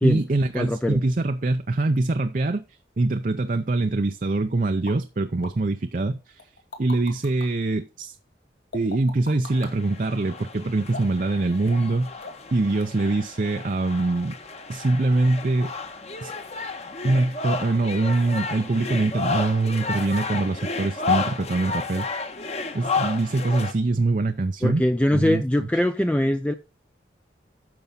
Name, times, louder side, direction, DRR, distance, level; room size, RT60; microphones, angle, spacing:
voice 1, 0.0-6.5 6.8-8.2 8.7-12.2 12.5-14.4 14.7-15.7 16.2-16.3 17.0-22.1 22.7-24.8 25.1-25.7, right 2 dB, 45° right, 0.5 m, -24 dB
voice 2, 0.5-1.0 24.6-26.5, left 1 dB, 5° left, 0.4 m, -22 dB
sound 1, 4.9-5.0 5.4-5.5 6.4-7.5 8.7-9.7 10.9-11.3 11.7-11.9 12.2-12.5 12.8-12.9, left 2 dB, 70° left, 2.3 m, -38 dB
sound 2, 9.5-23.7, left 4 dB, 35° left, 1.2 m, -32 dB
10.5 x 7.0 x 4.2 m
head